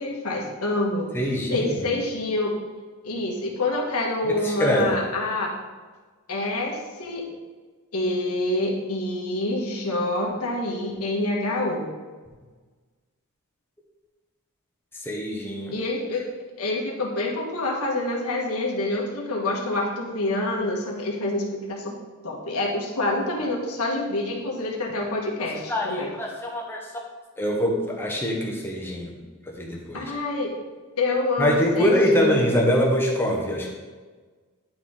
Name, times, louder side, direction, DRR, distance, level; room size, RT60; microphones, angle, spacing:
voice 1, 0.0-1.1 1.5-2.5 3.0-5.5 6.3-7.2 7.9-11.9 15.7-16.3 16.6-22.0 22.2-26.1 29.9-30.5 31.0-32.5, left 2 dB, 90° left, -1 dB, 1.5 m, -27 dB
voice 2, 1.1-1.7 4.4-5.0 15.0-15.7 25.7-26.8 27.4-29.2 29.6-30.1 31.4-33.7, equal, 10° left, -1 dB, 1.2 m, -23 dB
10.0 x 4.6 x 3.8 m, 1.4 s
head